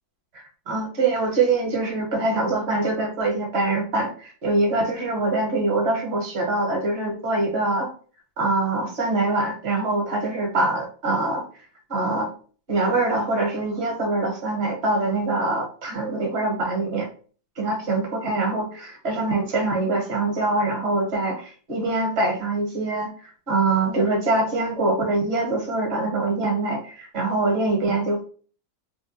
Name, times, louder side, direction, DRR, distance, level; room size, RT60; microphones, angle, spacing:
voice 1, 0.3-7.9 8.4-11.4 11.9-12.3 12.7-17.1 17.6-28.3, right 2 dB, 45° right, 1 dB, 1.1 m, -24 dB
2.8 x 2.4 x 3.8 m, 0.41 s
omnidirectional pair, 1.9 m